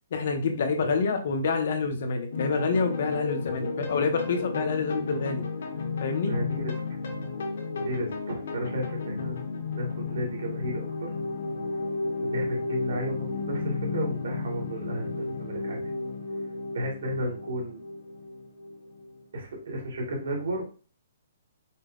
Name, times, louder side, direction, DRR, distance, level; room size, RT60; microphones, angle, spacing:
voice 1, 0.1-5.5 6.0-6.4, left 4 dB, 55° left, 6 dB, 0.8 m, -27 dB
sound 1, 2.3-19.2, left 3 dB, 70° left, 1.4 m, -33 dB
voice 2, 6.2-6.8 7.8-11.1 12.2-15.8 16.7-17.8 19.3-20.6, right 1 dB, 70° right, 0 dB, 2.1 m, -33 dB
5.4 x 2.2 x 3.7 m, 0.37 s
hypercardioid pair, 170°, 0 cm